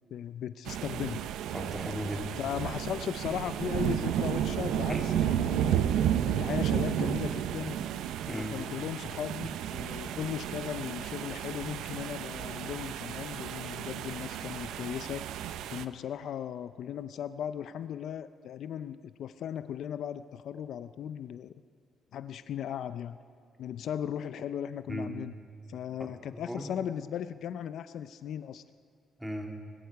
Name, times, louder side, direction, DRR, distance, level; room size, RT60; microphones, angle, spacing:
voice 1, 0.1-1.2 2.4-7.8 8.3-21.5 22.1-23.2 23.6-25.4 25.7-28.6, left 9 dB, 70° left, 13 dB, 0.4 m, -37 dB
sound 1, 0.7-15.8, right 10 dB, 85° right, 0.6 m, -32 dB
voice 2, 1.5-2.4 4.9-5.2 8.3-8.5 24.9-25.1 26.0-26.7 29.2-29.5, equal, 5° right, 2 dB, 2.2 m, -37 dB
23.5 x 12.5 x 4.8 m, 2.1 s
cardioid pair, 90°, 0 cm